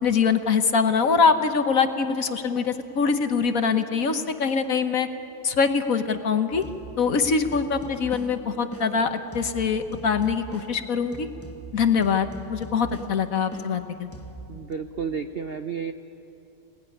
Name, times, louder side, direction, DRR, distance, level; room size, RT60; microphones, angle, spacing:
voice 1, 0.0-5.1 5.4-6.6 7.0-11.3 11.7-14.1, left 5 dB, 55° left, 8 dB, 1.3 m, -23 dB
sound 1, 6.5-14.7, right 1 dB, 10° left, 0.8 m, -41 dB
voice 2, 14.5-15.9, right 6 dB, 55° right, 7 dB, 0.6 m, -31 dB
27.0 x 18.5 x 9.9 m, 2.9 s
omnidirectional pair, 2.0 m